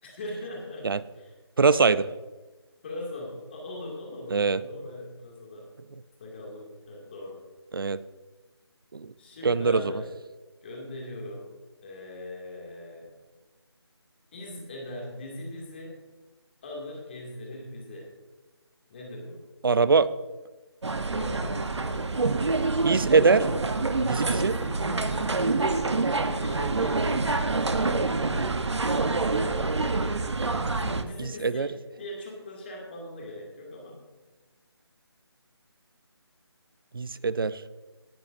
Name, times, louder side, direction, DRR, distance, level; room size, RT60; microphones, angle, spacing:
voice 1, 0.0-0.9 1.1-1.3 2.8-5.7 6.2-7.4 9.2-10.1 10.6-11.5 11.8-13.1 14.3-16.0 16.6-18.1 18.9-19.4 21.1-21.7 24.4-25.6 26.4-27.7 30.8-34.0, left 1 dB, 25° left, -1 dB, 2.4 m, -40 dB
voice 2, 1.6-2.1 4.3-4.6 7.7-8.0 8.9-9.1 9.4-10.0 19.6-20.1 22.8-23.5 24.0-24.5 31.2-31.7 36.9-37.6, right 4 dB, 55° right, 17 dB, 0.5 m, -22 dB
sound 1, 20.8-31.0, right 3 dB, 85° right, 1.1 m, -26 dB
18.0 x 10.5 x 2.6 m, 1.2 s
figure-of-eight pair, 170°, 14 cm